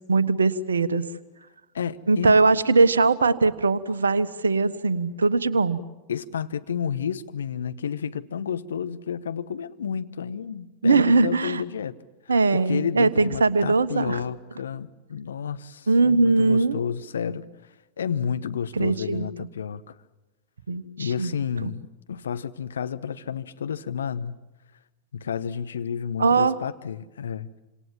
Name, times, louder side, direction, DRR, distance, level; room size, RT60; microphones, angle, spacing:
voice 1, 0.1-1.0 2.1-5.8 10.8-11.6 12.3-14.2 15.9-16.8 18.8-19.5 20.7-21.3 21.6-21.7 26.2-26.6, right 3 dB, 70° right, 1.2 m, -21 dB
voice 2, 1.7-2.6 6.1-12.0 12.2-17.5 18.0-19.9 21.0-24.4 25.1-27.5, left 7 dB, 65° left, 1.1 m, -31 dB
28.0 x 26.5 x 7.4 m
figure-of-eight pair, 90°, 0 cm